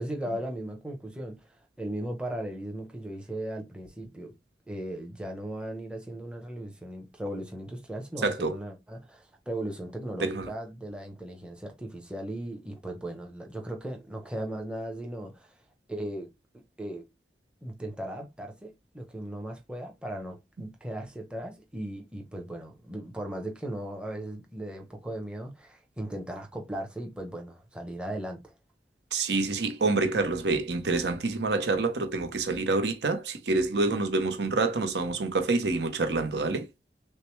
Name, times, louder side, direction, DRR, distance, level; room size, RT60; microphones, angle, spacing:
voice 1, 0.0-1.5 1.8-4.3 4.7-15.6 15.9-16.3 16.8-17.1 17.6-28.5, right 1 dB, 5° right, 0.8 m, -37 dB
voice 2, 8.2-8.5 10.2-10.5 29.1-36.7, right 3 dB, 75° right, 0.8 m, -27 dB
6.4 x 2.1 x 3.1 m
head